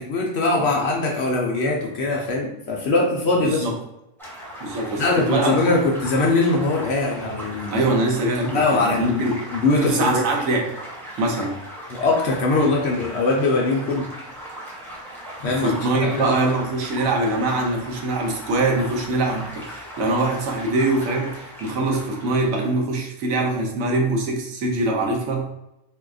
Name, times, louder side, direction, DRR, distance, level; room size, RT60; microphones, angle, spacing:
voice 1, 0.0-3.7 5.0-7.8 8.4-10.3 11.9-14.1 15.4-16.4, left 3 dB, 65° left, -1 dB, 0.7 m, -22 dB
voice 2, 3.4-3.7 4.6-5.8 7.7-9.4 9.8-10.7 11.2-11.6 15.6-25.5, right 2 dB, 75° right, 1 dB, 1.0 m, -23 dB
sound 1, 4.2-22.7, equal, ahead, 0.8 m, -38 dB
3.6 x 2.7 x 2.4 m, 0.88 s
omnidirectional pair, 1.4 m